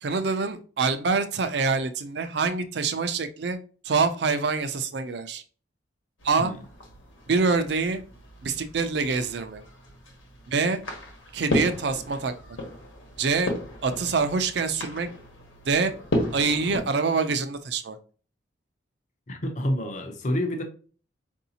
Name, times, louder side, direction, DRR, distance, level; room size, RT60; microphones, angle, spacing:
voice 1, 0.0-3.6 3.8-5.4 6.2-6.5 7.3-8.0 8.4-9.6 10.5-10.8 11.3-12.3 13.2-13.5 13.8-15.1 15.7-15.9 16.3-18.0, right 4 dB, 60° right, 0.4 m, -25 dB
sound 1, 6.2-16.8, left 1 dB, 90° left, 1.1 m, -34 dB
voice 2, 19.3-20.6, left 1 dB, 40° left, 0.6 m, -28 dB
4.7 x 2.6 x 2.7 m
head